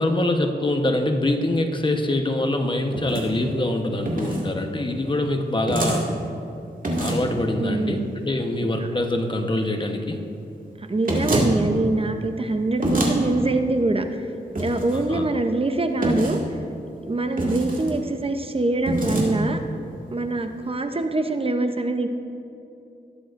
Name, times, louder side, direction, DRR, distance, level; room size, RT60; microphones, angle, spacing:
voice 1, 0.0-6.1 7.0-10.2 14.9-15.3, left 1 dB, 25° left, 4 dB, 1.0 m, -24 dB
sound 1, 2.9-3.3 4.1-4.4 5.7-6.0 6.8-7.3 11.1-11.5 12.8-13.2 14.6-15.0 16.0-16.4 17.4-17.9 18.8-19.3, right 1 dB, 50° right, 2.1 m, -24 dB
voice 2, 7.6-8.1 8.8-8.9 10.9-14.1 14.6-16.4 17.0-19.6 20.1-22.1, right 2 dB, 30° right, 7 dB, 0.7 m, -24 dB
19.5 x 7.8 x 2.5 m, 2.6 s
wide cardioid pair, 75°, 18 cm